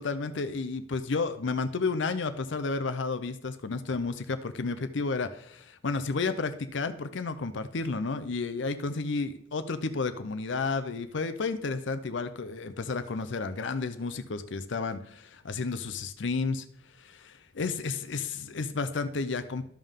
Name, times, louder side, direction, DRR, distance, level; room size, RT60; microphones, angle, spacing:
voice 1, 0.0-16.6 17.0-19.6, left 4 dB, 65° left, 10 dB, 0.6 m, -32 dB
13.0 x 5.5 x 3.6 m, 0.69 s
head